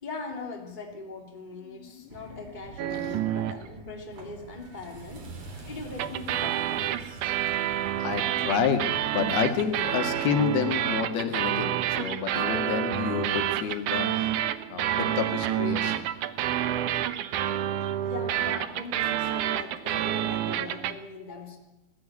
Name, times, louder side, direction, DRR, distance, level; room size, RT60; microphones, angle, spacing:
voice 1, 0.0-7.3 18.0-21.6, left 3 dB, 15° left, 2 dB, 2.7 m, -41 dB
voice 2, 1.7-2.1 2.9-3.1 8.0-14.3 14.7-16.1, left 6 dB, 80° left, 6 dB, 3.7 m, -29 dB
sound 1, 2.1-10.3, right 4 dB, 45° right, 3.9 m, -46 dB
sound 2, 2.8-3.7 6.0-21.0, right 11 dB, 70° right, 2.0 m, -29 dB
21.0 x 14.0 x 9.7 m, 0.92 s
omnidirectional pair, 4.4 m